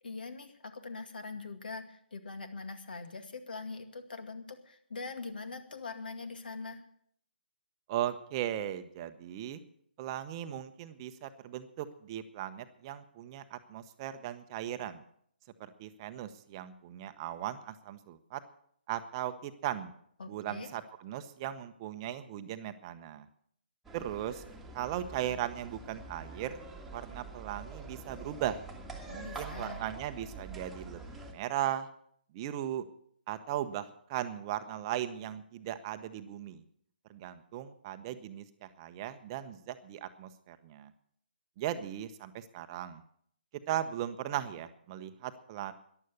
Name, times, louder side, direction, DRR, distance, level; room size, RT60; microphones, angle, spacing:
voice 1, 0.0-6.8 20.2-20.7 29.1-29.8, left 4 dB, 60° left, 8 dB, 2.2 m, -43 dB
voice 2, 7.9-9.6 10.0-15.0 15.6-18.4 18.9-19.9 20.3-23.3 23.9-24.4 24.7-26.6 26.9-28.6 29.1-31.9 32.3-32.8 33.3-36.6 37.1-40.9 41.6-43.0 43.7-45.7, right 12 dB, 30° right, 10 dB, 0.9 m, -37 dB
sound 1, 23.8-31.3, right 3 dB, 5° right, 1.8 m, -46 dB
14.0 x 11.0 x 6.9 m, 0.66 s
figure-of-eight pair, 135°, 6 cm